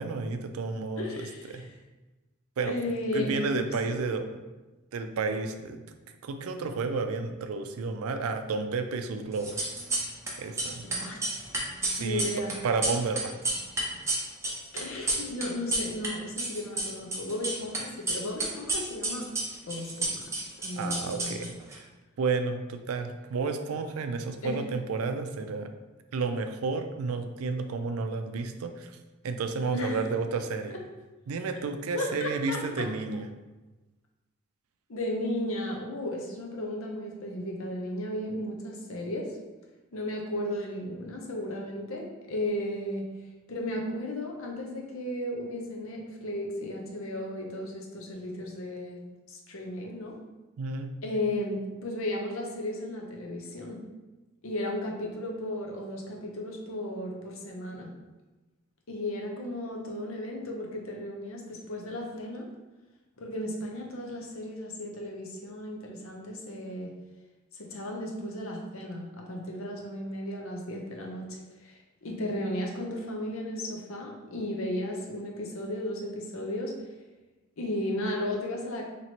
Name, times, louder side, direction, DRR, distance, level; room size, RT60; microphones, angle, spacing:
voice 1, 0.0-1.1 1.5-1.6 2.6-2.8 3.1-4.2 4.9-5.8 6.2-9.8 10.4-10.9 11.9-12.3 12.6-13.4 20.8-21.9 22.2-25.7 26.1-28.9 29.2-30.8 31.3-33.3 50.6-50.9, right 4 dB, 85° right, 7 dB, 0.4 m, -31 dB
voice 2, 1.0-1.7 2.6-4.0 10.8-11.4 12.0-12.5 14.7-19.3 19.6-21.5 24.4-24.6 29.7-30.1 31.9-32.9 34.9-39.4 39.9-43.1 43.5-50.2 51.0-53.9 54.4-57.9 58.9-62.5 63.2-66.9 67.5-76.8 77.6-78.8, left 1 dB, 70° left, 0 dB, 0.7 m, -35 dB
sound 1, 9.4-10.3 10.6-16.1 16.4-17.8 18.1-21.8, right 2 dB, 15° right, 0.7 m, -30 dB
4.3 x 3.0 x 2.9 m, 1.1 s
head